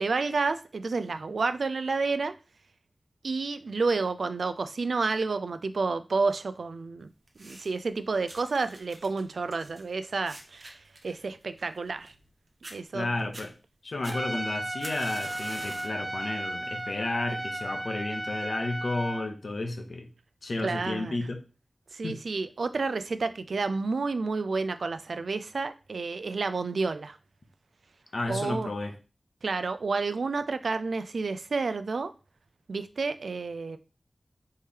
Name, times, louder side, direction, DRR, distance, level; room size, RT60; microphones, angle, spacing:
voice 1, 0.0-2.3 3.2-7.1 7.4-12.1 12.7-13.1 20.6-21.2 21.9-27.2 28.3-28.7 29.4-32.1 32.7-33.8, right 4 dB, 90° right, 0.3 m, -30 dB
sound 1, 7.3-7.9 8.3-12.3 12.6-12.8 13.2-13.5 14.0-16.0 16.5-16.8 17.6-17.7, right 1 dB, 60° right, 1.0 m, -46 dB
voice 2, 12.9-13.5 13.8-20.1 20.4-21.4 22.0-22.2 28.1-28.9, left 2 dB, 75° left, 0.8 m, -32 dB
Trumpet, 14.1-19.3, right 1 dB, 30° right, 0.5 m, -35 dB
4.2 x 3.2 x 3.6 m
wide cardioid pair, 65°, 0 cm